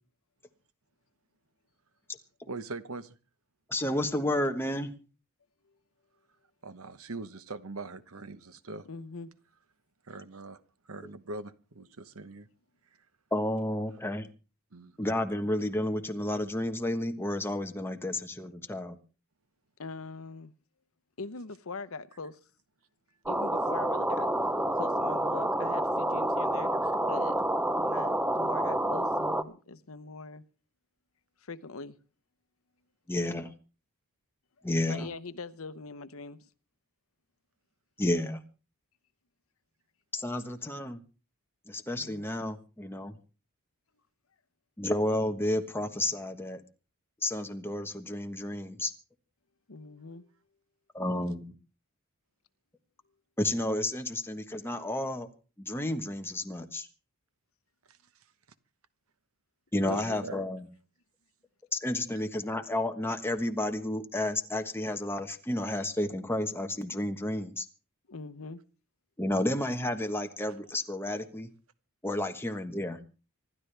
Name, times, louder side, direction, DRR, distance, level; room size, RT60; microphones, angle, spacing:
voice 1, 2.5-3.1 6.6-8.9 10.1-10.6 10.8-12.5 14.7-15.1 26.8-26.9 57.9-58.0 59.9-60.4 70.4-70.5, right 3 dB, 70° right, 1.1 m, -42 dB
voice 2, 3.7-4.9 13.3-14.3 15.0-19.0 33.1-33.5 34.6-35.1 38.0-38.4 40.1-41.0 41.7-43.1 44.8-46.6 47.2-48.9 50.9-51.5 53.4-55.3 55.6-56.9 59.7-60.7 61.7-67.7 69.2-71.5 72.0-73.0, left 1 dB, 10° left, 1.2 m, -31 dB
voice 3, 8.9-9.3 19.8-20.5 21.2-22.4 23.3-24.3 24.7-26.7 27.1-27.3 27.7-30.4 31.4-32.0 34.9-36.4 42.0-42.3 49.7-50.2 59.9-60.2 68.1-68.6, left 3 dB, 65° left, 0.9 m, -42 dB
sound 1, 23.3-29.4, right 1 dB, 5° right, 0.7 m, -28 dB
26.0 x 12.0 x 3.4 m
head